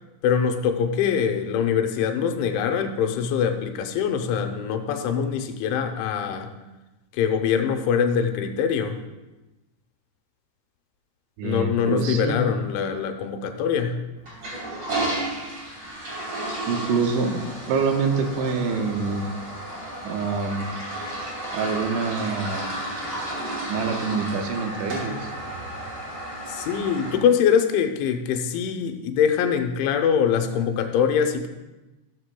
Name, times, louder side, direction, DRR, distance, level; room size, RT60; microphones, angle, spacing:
voice 1, 0.2-6.5 7.2-9.0 11.4-14.0 26.5-31.5, left 7 dB, 85° left, 5 dB, 3.2 m, -23 dB
voice 2, 11.4-12.4 16.7-17.4 17.7-19.3 20.0-20.7 21.5-22.7 23.7-25.3, right 5 dB, 90° right, 3 dB, 3.3 m, -26 dB
Toilet flush, 14.2-27.2, right 1 dB, 30° right, 3.4 m, -33 dB
14.5 x 12.5 x 2.2 m, 1.1 s
omnidirectional pair, 5.3 m